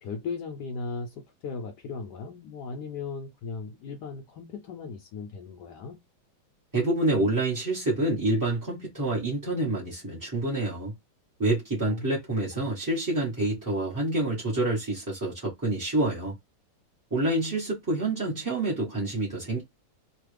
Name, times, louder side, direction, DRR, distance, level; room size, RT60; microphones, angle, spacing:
voice 1, 0.0-6.0 11.9-12.1 12.6-12.7, left 4 dB, 75° left, 1.1 m, -37 dB
voice 2, 6.7-10.9 11.4-16.4 17.1-19.6, right 2 dB, 15° right, 0.8 m, -27 dB
3.1 x 2.3 x 3.2 m
omnidirectional pair, 2.0 m